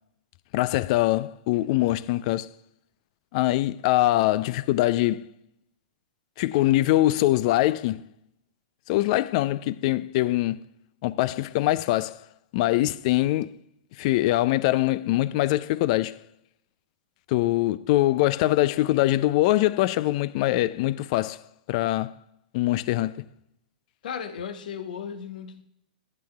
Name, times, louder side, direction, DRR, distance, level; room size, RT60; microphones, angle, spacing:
voice 1, 0.5-2.5 3.3-5.3 6.4-8.1 8.9-10.6 11.0-12.2 12.5-13.6 14.0-16.2 17.3-21.4 21.7-22.1 22.5-23.3, left 16 dB, 50° left, 0.3 m, -23 dB
voice 2, 24.0-25.6, left 7 dB, 70° left, 1.0 m, -35 dB
15.5 x 8.6 x 2.3 m
hypercardioid pair, 120°, 5 cm